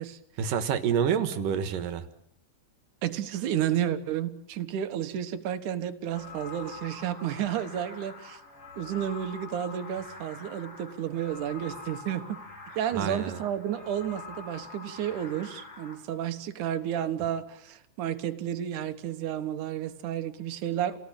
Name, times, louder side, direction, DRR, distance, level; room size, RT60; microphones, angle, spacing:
voice 1, 0.4-2.1 12.9-13.4, right 7 dB, 85° right, 10 dB, 3.1 m, -28 dB
voice 2, 3.0-8.4 8.8-12.4 12.8-21.0, right 10 dB, 70° right, 8 dB, 2.9 m, -31 dB
sound 1, 6.1-16.0, left 3 dB, 50° left, 6.6 m, -45 dB
29.0 x 18.5 x 8.8 m, 0.76 s
omnidirectional pair, 3.8 m